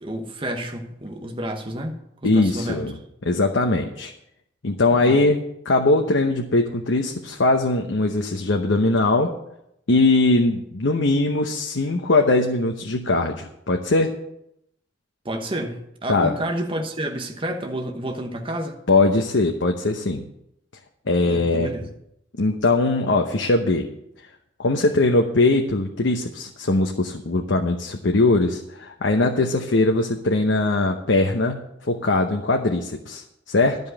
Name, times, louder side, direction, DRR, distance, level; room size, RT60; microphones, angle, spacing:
voice 1, 0.0-2.8 4.9-5.3 15.2-18.8 21.2-21.9, right 1 dB, 30° right, 3 dB, 1.1 m, -30 dB
voice 2, 2.2-2.9 3.2-4.1 4.6-5.4 5.6-9.3 9.9-14.1 16.1-16.3 18.9-20.3 21.1-21.7 22.4-23.9 24.6-33.8, left 2 dB, 85° left, 3 dB, 0.9 m, -21 dB
12.0 x 5.4 x 7.8 m, 0.79 s
head